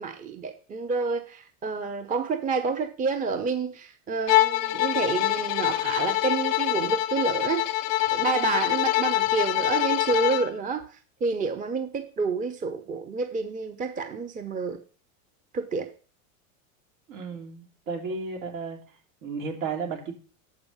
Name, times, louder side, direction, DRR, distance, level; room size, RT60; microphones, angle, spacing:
voice 1, 0.0-7.7 8.1-10.9 11.2-14.8 15.5-15.9, right 4 dB, 20° right, 0.7 m, -29 dB
Bowed string instrument, 4.3-10.5, left 15 dB, 40° left, 0.4 m, -25 dB
voice 2, 17.1-18.8 19.2-20.1, right 4 dB, 70° right, 3.1 m, -33 dB
7.2 x 5.1 x 7.2 m
supercardioid pair, 120°, 40 cm